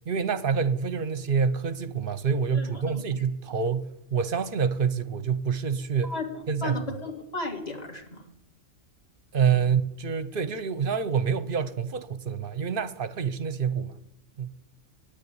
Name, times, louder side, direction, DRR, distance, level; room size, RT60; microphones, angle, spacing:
voice 1, 0.1-6.1 6.5-6.8 9.3-14.0 14.4-14.5, right 6 dB, 50° right, 0.8 m, -27 dB
voice 2, 2.5-3.0 6.0-8.2 9.5-9.7, left 2 dB, 30° left, 2.1 m, -35 dB
9.8 x 9.8 x 9.5 m
omnidirectional pair, 1.4 m